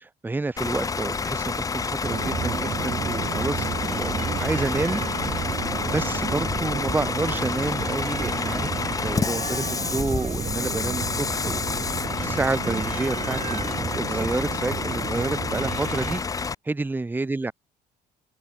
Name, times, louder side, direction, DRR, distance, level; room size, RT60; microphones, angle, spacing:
voice 1, 0.0-5.5 5.8-17.5, right 3 dB, 10° right, 0.8 m, -29 dB
Bus / Idling, 0.6-16.5, left 5 dB, 20° left, 0.5 m, -29 dB
sound 1, 2.0-16.2, right 8 dB, 45° right, 2.3 m, -32 dB
cardioid pair, 110°, 17 cm